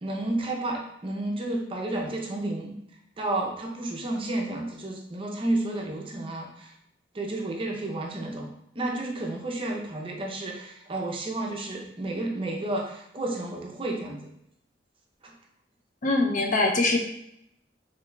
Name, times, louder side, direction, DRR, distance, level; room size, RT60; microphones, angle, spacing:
voice 1, 0.0-2.8 3.2-6.7 7.1-8.5 8.8-14.2 15.2-15.3, right 2 dB, 30° right, 0 dB, 0.5 m, -31 dB
voice 2, 16.0-17.0, left 2 dB, 45° left, 2 dB, 0.4 m, -23 dB
4.0 x 3.1 x 2.2 m, 0.77 s
head